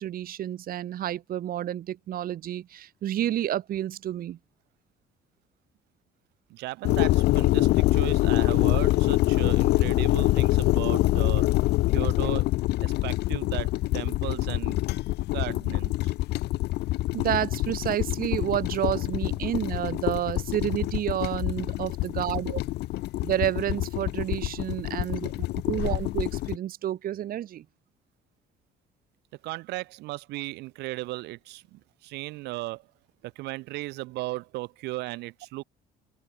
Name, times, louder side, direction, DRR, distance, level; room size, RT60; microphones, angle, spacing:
voice 1, 0.0-4.4 17.1-22.6 23.2-27.7, right 11 dB, 60° right, 2.1 m, -30 dB
voice 2, 6.5-11.5 11.9-12.5 12.8-14.8 15.3-16.1 29.4-32.9 33.2-35.6, right 20 dB, 85° right, 0.9 m, -36 dB
sound 1, 6.8-26.6, left 17 dB, 75° left, 0.9 m, -25 dB
open air
cardioid pair, 110°, 17 cm